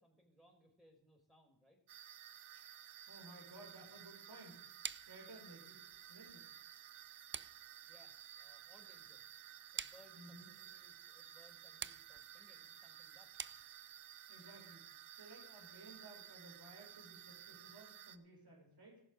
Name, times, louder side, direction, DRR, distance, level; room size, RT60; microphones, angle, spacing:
voice 1, 0.0-1.8 7.9-9.2 9.7-13.3, equal, ahead, -1 dB, 4.4 m, -67 dB
sound 1, 1.9-18.2, right 10 dB, 80° right, 0.7 m, -55 dB
voice 2, 3.1-4.7 5.0-5.8 6.1-6.5 10.1-10.5 14.3-14.8 15.1-19.0, right 2 dB, 50° right, -2 dB, 5.9 m, -57 dB
sound 2, 4.8-14.2, right 6 dB, 25° right, 0.4 m, -51 dB
17.0 x 6.5 x 4.9 m, 0.73 s
cardioid pair, 45°, 49 cm